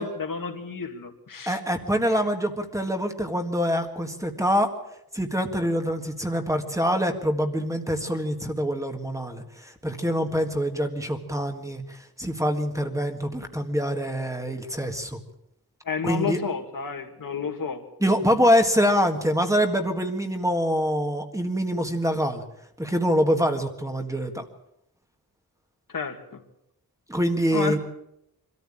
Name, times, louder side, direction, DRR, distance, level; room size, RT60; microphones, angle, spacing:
voice 1, 0.0-1.6 2.1-2.2 15.8-17.8 25.9-26.4 27.5-27.8, left 5 dB, 65° left, 5 dB, 2.3 m, -31 dB
voice 2, 1.5-4.7 5.1-15.2 16.0-16.4 18.0-22.4 22.8-24.4 27.1-27.8, equal, 10° right, 5 dB, 1.7 m, -25 dB
24.5 x 14.0 x 8.8 m, 0.82 s
wide cardioid pair, 165°, 36 cm